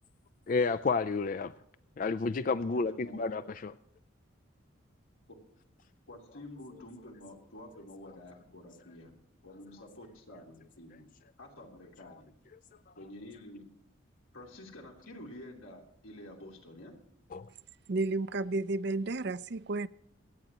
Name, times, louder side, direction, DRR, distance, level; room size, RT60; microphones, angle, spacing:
voice 1, 0.5-1.5 2.0-3.7 17.3-17.5, left 4 dB, 40° left, 0.3 m, -30 dB
voice 2, 2.4-3.5 5.3-5.4 6.1-9.1 9.4-11.1 11.4-12.3 13.0-13.6 14.3-17.0, left 1 dB, 85° left, 3.0 m, -49 dB
voice 3, 17.9-19.9, right 3 dB, 50° right, 0.5 m, -32 dB
25.5 x 9.2 x 2.9 m
head